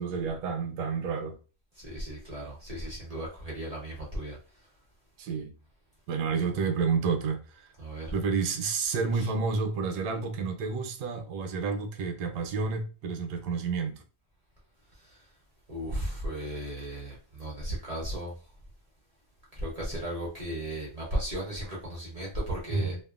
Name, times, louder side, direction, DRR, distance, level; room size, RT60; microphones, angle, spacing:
voice 1, 0.0-1.4 5.2-5.5 6.1-7.7 8.1-14.0 22.7-23.0, right 5 dB, 75° right, 1.1 m, -30 dB
voice 2, 1.8-4.4 7.8-8.1 15.7-18.3 19.5-23.0, right 1 dB, 50° right, 0.4 m, -35 dB
2.9 x 2.3 x 2.3 m
omnidirectional pair, 2.0 m